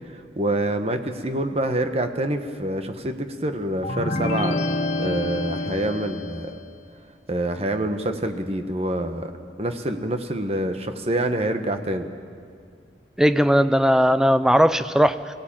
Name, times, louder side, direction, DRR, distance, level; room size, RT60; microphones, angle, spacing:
voice 1, 0.1-6.5 7.3-9.3 9.6-12.1, right 1 dB, 35° right, 7 dB, 1.3 m, -26 dB
sound 1, 3.8-6.6, left 2 dB, 40° left, 1.4 m, -27 dB
voice 2, 13.2-15.3, equal, 5° right, 12 dB, 0.5 m, -18 dB
21.5 x 16.5 x 8.9 m, 2.1 s
head